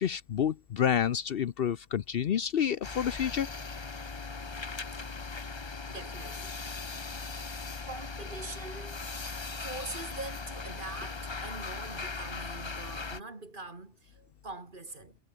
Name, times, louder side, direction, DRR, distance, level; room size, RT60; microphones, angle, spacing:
voice 1, 0.0-3.5, left 9 dB, 60° left, 0.8 m, -29 dB
sound 1, 2.8-13.2, left 4 dB, 25° left, 0.9 m, -39 dB
voice 2, 5.9-6.6 7.9-9.2 9.6-15.2, right 2 dB, 45° right, 2.8 m, -44 dB
omnidirectional pair, 1.2 m